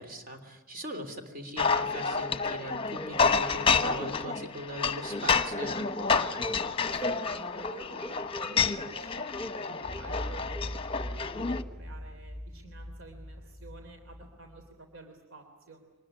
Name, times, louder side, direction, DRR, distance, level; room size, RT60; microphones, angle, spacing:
voice 1, 0.0-5.8, equal, 40° right, 7 dB, 3.4 m, -40 dB
sound 1, 1.6-11.6, left 5 dB, 25° left, 1.1 m, -29 dB
voice 2, 6.3-15.8, right 2 dB, 60° right, 5 dB, 3.2 m, -51 dB
sound 2, 9.8-14.7, left 1 dB, 20° right, 7.5 m, -41 dB
25.0 x 20.0 x 9.9 m, 1.1 s
head